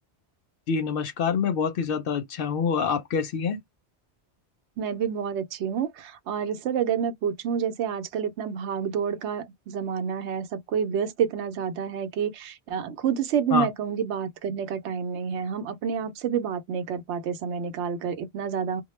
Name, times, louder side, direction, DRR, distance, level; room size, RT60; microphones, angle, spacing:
voice 1, 0.7-3.6 13.5-13.7, left 6 dB, 65° left, 0.7 m, -26 dB
voice 2, 4.8-18.8, right 7 dB, 90° right, 0.9 m, -29 dB
2.2 x 2.0 x 3.0 m
omnidirectional pair, 1.1 m